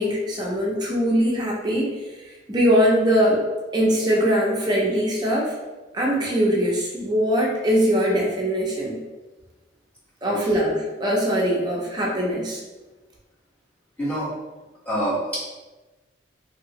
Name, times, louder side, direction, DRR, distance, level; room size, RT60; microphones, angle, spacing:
voice 1, 0.0-1.9 2.5-3.4 3.7-5.5 5.9-9.0 10.2-12.6, equal, 25° right, -2 dB, 0.5 m, -21 dB
voice 2, 14.0-14.3 14.8-15.4, right 1 dB, 10° left, -10 dB, 1.2 m, -26 dB
2.9 x 2.7 x 2.9 m, 1.2 s
head